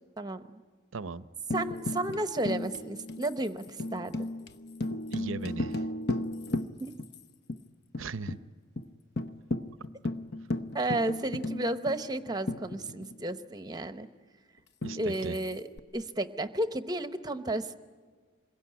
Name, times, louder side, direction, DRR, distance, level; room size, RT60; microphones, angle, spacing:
voice 1, 0.2-0.6 1.5-4.2 6.8-6.9 10.7-14.1 15.0-15.7 15.9-17.8, right 1 dB, 20° right, 9 dB, 0.8 m, -32 dB
voice 2, 0.9-1.3 5.1-5.9 8.0-8.4 14.8-15.4, right 4 dB, 90° right, 14 dB, 0.7 m, -37 dB
Tambourine, 1.5-7.2 7.5-7.6 7.9-8.4 8.8-8.9 9.2-13.3 14.8-15.8, left 2 dB, 55° left, 0.8 m, -35 dB
26.5 x 22.5 x 9.7 m, 1.5 s
head